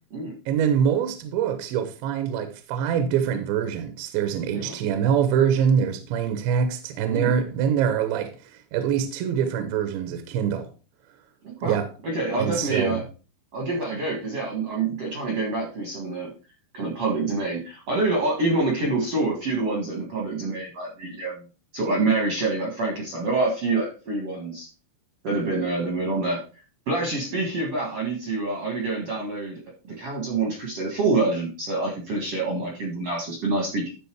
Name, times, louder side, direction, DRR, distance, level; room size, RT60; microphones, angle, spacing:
voice 1, 0.5-10.7 11.6-11.9 12.4-13.0, right 8 dB, 80° right, 2.9 m, -24 dB
voice 2, 11.4-13.0 13.5-16.3 16.7-21.4 21.7-24.7 25.2-26.4 26.9-29.6 29.9-33.9, right 3 dB, 55° right, 1.7 m, -26 dB
12.5 x 4.2 x 4.5 m
omnidirectional pair, 5.4 m